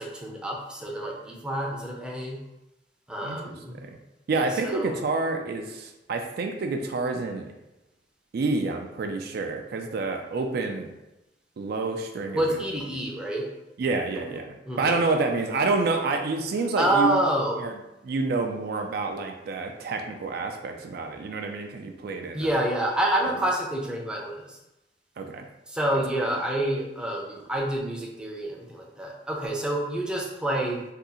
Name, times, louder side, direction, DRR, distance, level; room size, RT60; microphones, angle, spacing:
voice 1, 0.0-2.4 3.1-3.8 4.3-4.9 12.3-13.5 14.7-15.0 16.8-17.6 22.3-24.6 25.7-30.8, right 1 dB, 5° right, -2 dB, 0.5 m, -28 dB
voice 2, 3.2-3.5 4.3-7.5 8.3-10.9 11.6-12.6 13.8-17.2 17.6-17.8 18.0-22.5 23.2-23.3 25.2-25.5, right 3 dB, 60° right, 4 dB, 0.3 m, -28 dB
2.7 x 2.4 x 3.7 m, 0.95 s
head